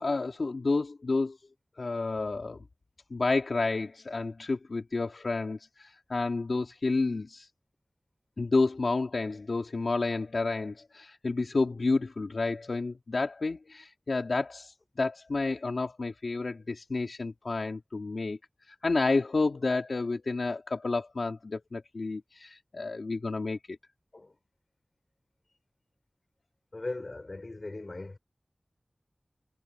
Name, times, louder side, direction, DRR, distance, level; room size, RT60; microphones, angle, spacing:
voice 1, 0.0-1.4 1.8-2.6 3.1-7.5 8.4-18.4 18.7-23.8, left 3 dB, 80° left, 2.7 m, -30 dB
voice 2, 26.7-28.2, left 2 dB, 50° left, 7.0 m, -39 dB
wide cardioid pair, 70°, 0 cm